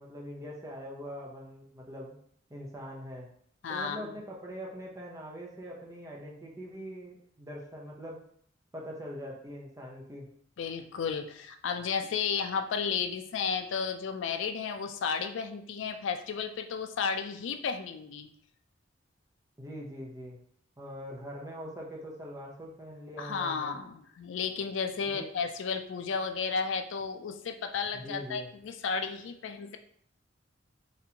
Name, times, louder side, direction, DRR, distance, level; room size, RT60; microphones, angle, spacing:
voice 1, 0.0-2.2 2.5-3.3 3.7-8.2 8.7-10.3 19.6-20.4 20.8-23.7 25.0-25.3 27.9-28.5, equal, 15° right, -3 dB, 0.6 m, -42 dB
voice 2, 3.6-4.1 10.6-18.3 23.2-29.8, left 6 dB, 75° left, 7 dB, 0.4 m, -33 dB
4.1 x 2.5 x 2.7 m, 0.62 s
head